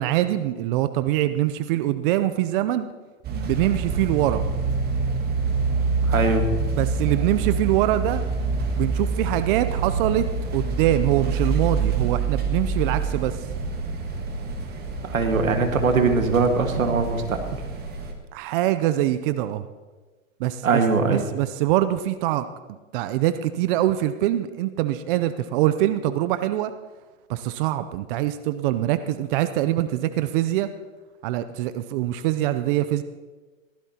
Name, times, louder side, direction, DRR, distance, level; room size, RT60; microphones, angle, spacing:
voice 1, 0.0-2.9 3.3-4.4 6.8-8.2 8.8-10.3 10.5-13.4 18.3-19.6 20.4-20.8 21.1-22.4 22.9-26.7 27.3-30.7 31.2-33.0, right 14 dB, 40° right, 12 dB, 0.6 m, -23 dB
sound 1, 3.2-18.1, right 4 dB, 25° right, 1.5 m, -26 dB
voice 2, 6.0-6.5 15.1-17.6 20.6-21.3, right 4 dB, 85° right, 6 dB, 1.7 m, -21 dB
16.0 x 14.0 x 2.9 m, 1.3 s
hypercardioid pair, 120°, 40 cm